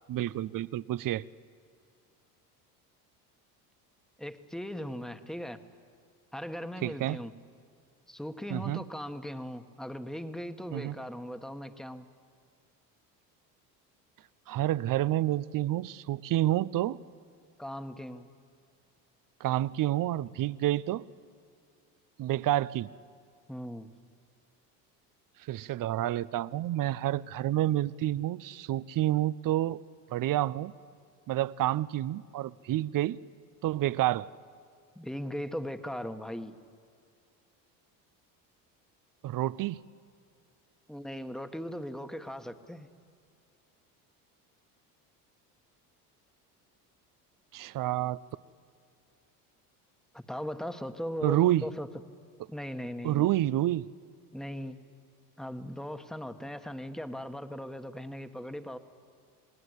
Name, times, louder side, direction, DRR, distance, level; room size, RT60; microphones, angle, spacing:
voice 1, 0.1-1.2 6.8-7.2 8.5-8.8 10.7-10.9 14.5-17.0 19.4-21.0 22.2-22.9 25.5-29.8 30.1-30.7 31.3-33.2 33.6-34.3 39.2-39.8 47.5-48.2 51.2-51.7 53.0-53.9, right 14 dB, 45° right, 19 dB, 0.7 m, -29 dB
voice 2, 4.2-5.6 6.3-7.3 8.1-12.1 17.6-18.3 23.5-23.9 34.9-36.6 40.9-42.9 50.1-51.9 52.5-53.3 54.3-54.8 55.4-58.8, equal, ahead, 8 dB, 1.4 m, -38 dB
28.5 x 20.0 x 8.2 m, 2.3 s
hypercardioid pair, 75°, 47 cm